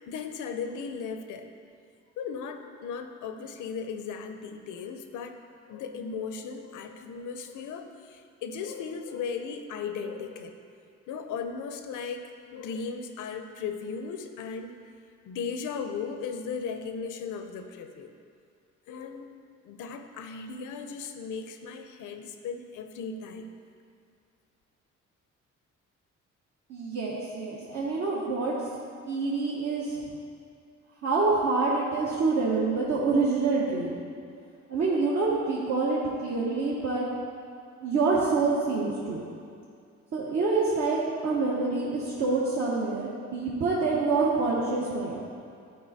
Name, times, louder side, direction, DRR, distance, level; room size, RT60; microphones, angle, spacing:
voice 1, 0.0-1.5 2.2-5.4 5.7-10.5 11.1-12.2 12.5-14.7 15.2-18.1 18.9-19.3 19.6-23.5, left 5 dB, 85° left, 7 dB, 0.6 m, -36 dB
voice 2, 26.7-28.5 29.1-30.0 31.0-33.9 34.7-37.1 37.8-39.2 40.1-45.2, right 3 dB, 60° right, -6 dB, 1.1 m, -26 dB
10.5 x 4.4 x 4.1 m, 2.4 s
cardioid pair, 90°, 30 cm